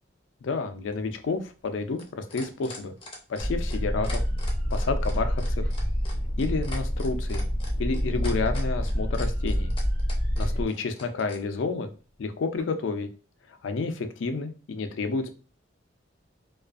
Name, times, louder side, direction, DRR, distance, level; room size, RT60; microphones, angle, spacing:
voice 1, 0.4-2.9 3.3-4.2 4.7-5.7 6.4-7.5 7.8-9.7 10.4-11.9 12.2-13.1 13.6-15.4, left 4 dB, 75° left, 7 dB, 0.4 m, -30 dB
sound 1, 0.9-11.4 12.6-12.7, left 2 dB, 25° left, 0.5 m, -43 dB
sound 2, 3.4-10.6, equal, 50° right, 0.5 m, -27 dB
2.4 x 2.3 x 2.4 m, 0.36 s
head